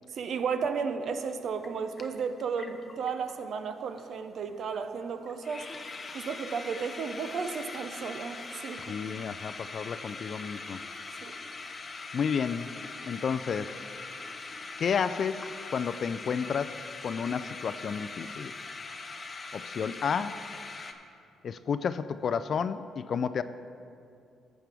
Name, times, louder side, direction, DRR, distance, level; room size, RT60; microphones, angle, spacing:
voice 1, 0.1-5.7 6.1-8.8 11.2-11.4, right 5 dB, 65° right, 9 dB, 0.6 m, -33 dB
sound 1, 1.2-1.3 1.6-3.4 3.7-3.8 3.9-4.2 4.5-4.6 5.0-5.1 5.3-20.9, left 3 dB, 35° left, 0.7 m, -42 dB
voice 2, 8.9-10.8 12.1-12.7 13.1-13.8 14.8-16.8 17.0-18.5 19.5-20.5 21.4-23.4, left 6 dB, 55° left, 13 dB, 0.3 m, -31 dB
14.0 x 7.4 x 3.5 m, 2.5 s
cardioid pair, 90°, 0 cm